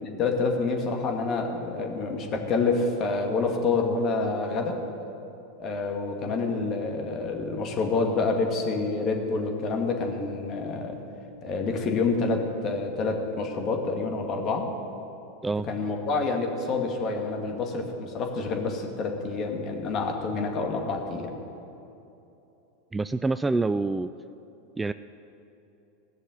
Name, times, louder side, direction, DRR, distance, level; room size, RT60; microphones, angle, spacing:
voice 1, 0.1-4.8 5.6-11.0 11.4-14.7 15.7-21.3, left 3 dB, 40° left, 3 dB, 2.2 m, -27 dB
voice 2, 22.9-24.1 24.8-24.9, right 3 dB, 10° right, 13 dB, 0.3 m, -26 dB
17.0 x 6.7 x 9.3 m, 2.9 s
hypercardioid pair, 100°, 0 cm